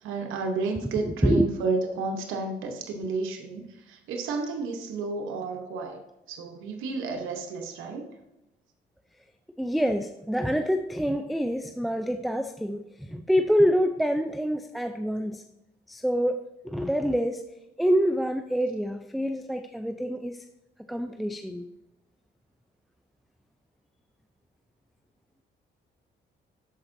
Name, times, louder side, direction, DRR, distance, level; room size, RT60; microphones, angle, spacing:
voice 1, 0.0-6.0 6.3-8.1, right 3 dB, 90° right, 3 dB, 0.9 m, -31 dB
voice 2, 1.0-1.5 9.6-15.4 15.9-17.4 17.8-20.4 20.9-21.7, equal, ahead, 7 dB, 0.4 m, -26 dB
12.5 x 4.4 x 2.6 m, 0.92 s
cardioid pair, 90°, 20 cm